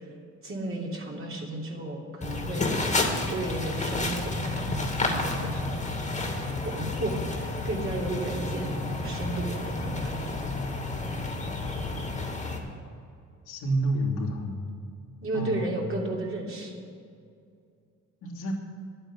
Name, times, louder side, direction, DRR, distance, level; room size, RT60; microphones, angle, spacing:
voice 1, 0.4-2.7 3.3-5.6 6.3-10.2 15.2-16.7, right 2 dB, 45° right, -2 dB, 3.2 m, -33 dB
sound 1, 2.2-12.6, left 2 dB, 25° left, 2.3 m, -30 dB
voice 2, 13.4-14.6 15.3-16.0 18.2-18.5, right 1 dB, 75° left, -3 dB, 3.0 m, -29 dB
11.0 x 8.9 x 8.2 m, 2.4 s
cardioid pair, 90°, 30 cm